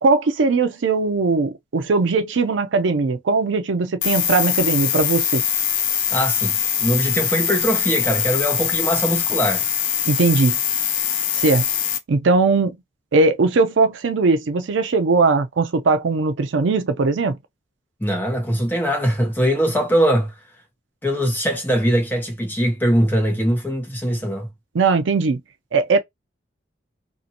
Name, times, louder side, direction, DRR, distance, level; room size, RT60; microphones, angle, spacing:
voice 1, 0.0-5.4 10.1-10.6 11.3-11.6 12.1-12.8 13.1-17.4 24.7-25.4 25.7-26.0, right 3 dB, 75° right, 0.5 m, -19 dB
sound 1, 4.0-12.0, left 9 dB, 80° left, 0.5 m, -22 dB
voice 2, 6.1-9.7 18.0-20.3 21.0-24.5, equal, 10° left, 0.7 m, -21 dB
2.7 x 2.5 x 2.7 m
head